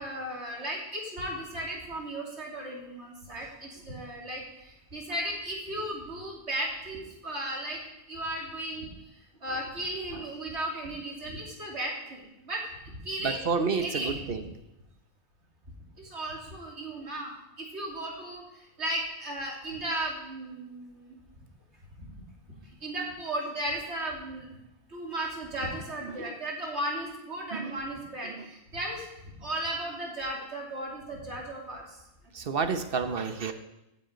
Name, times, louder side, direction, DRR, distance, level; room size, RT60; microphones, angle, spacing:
voice 1, 0.0-7.8 8.1-8.9 9.4-13.5 13.8-14.4 16.0-21.2 22.0-22.2 22.6-24.6 24.9-32.0 32.4-32.5, right 1 dB, 75° right, -2 dB, 3.1 m, -36 dB
voice 2, 13.2-14.5 26.1-26.4 27.5-27.7 28.3-28.5 32.3-33.5, right 5 dB, 55° right, 8 dB, 1.1 m, -30 dB
16.5 x 7.4 x 5.2 m, 0.91 s
omnidirectional pair, 1.2 m